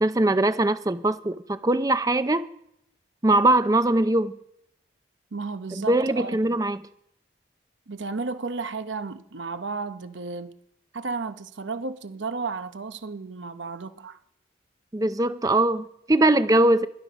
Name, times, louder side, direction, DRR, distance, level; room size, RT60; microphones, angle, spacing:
voice 1, 0.0-2.5 3.2-4.4 5.7-6.8 14.9-16.9, right 2 dB, 20° right, 0.5 m, -21 dB
voice 2, 5.3-6.6 7.9-10.5 10.9-14.2, right 4 dB, 85° right, 0.9 m, -33 dB
18.0 x 12.0 x 5.1 m
head